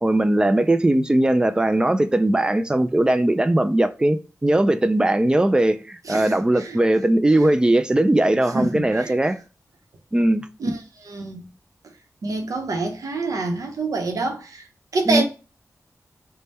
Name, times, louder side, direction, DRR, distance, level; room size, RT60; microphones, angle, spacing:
voice 1, 0.0-9.4 10.1-10.5 15.1-15.2, right 1 dB, 15° right, 0.3 m, -19 dB
voice 2, 6.1-6.8 8.5-9.1 10.6-10.7 11.0-11.5 12.2-14.6 14.9-15.2, right 3 dB, 75° right, 0.8 m, -26 dB
3.3 x 2.2 x 4.1 m
wide cardioid pair, 85°, 6 cm